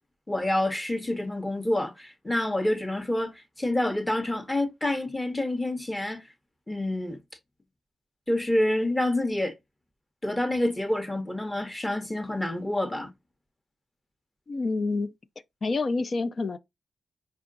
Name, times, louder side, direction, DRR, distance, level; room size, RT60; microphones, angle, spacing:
voice 1, 0.3-6.2 6.7-7.2 8.3-9.5 10.2-13.1, left 1 dB, 15° left, 0.9 m, -27 dB
voice 2, 14.5-15.1 15.6-16.6, left 3 dB, 50° left, 0.4 m, -27 dB
4.6 x 2.3 x 3.8 m
cardioid pair, 90°, 0 cm